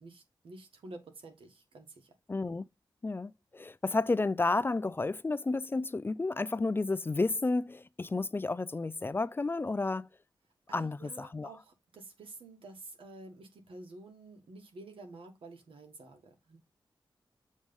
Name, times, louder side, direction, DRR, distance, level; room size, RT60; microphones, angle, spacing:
voice 1, 0.0-2.1 10.7-16.6, right 2 dB, 90° right, 1.5 m, -50 dB
voice 2, 2.3-2.7 3.0-10.1 10.7-11.5, left 3 dB, 25° left, 0.3 m, -31 dB
7.4 x 3.2 x 5.2 m
wide cardioid pair, 85°, 9 cm